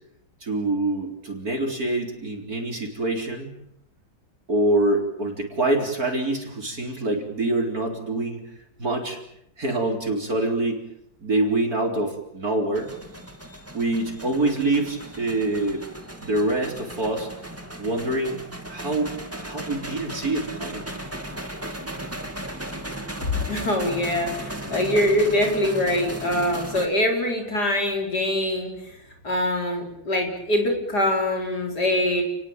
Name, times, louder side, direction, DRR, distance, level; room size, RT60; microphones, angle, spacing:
voice 1, 0.4-3.5 4.5-8.5 8.8-9.2 9.6-10.8 11.2-12.9 13.7-15.8 16.2-17.3 17.8-18.4 18.7-19.1 19.4-20.9, right 2 dB, 50° right, 2 dB, 4.4 m, -25 dB
sound 1, 12.7-26.9, right 1 dB, 5° right, 2.5 m, -36 dB
voice 2, 23.5-29.0 29.2-32.2, left 1 dB, 55° left, 2 dB, 5.0 m, -23 dB
29.5 x 20.0 x 8.9 m, 0.77 s
omnidirectional pair, 2.1 m